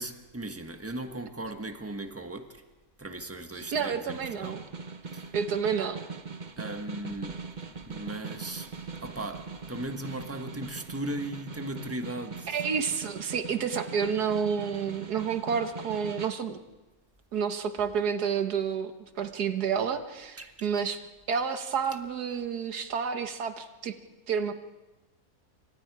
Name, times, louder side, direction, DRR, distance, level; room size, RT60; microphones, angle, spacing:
voice 1, 0.0-2.6 3.0-4.6 5.1-5.3 6.6-7.4 7.7-12.6 20.4-20.7, right 1 dB, 10° right, 1.3 m, -38 dB
Snare drum, 3.6-16.4, right 5 dB, 35° right, 1.0 m, -41 dB
voice 2, 3.7-4.6 5.3-6.0 12.5-16.6 17.3-21.0 21.3-24.0 24.3-24.5, right 6 dB, 85° right, 1.9 m, -30 dB
27.5 x 25.0 x 4.9 m
omnidirectional pair, 1.6 m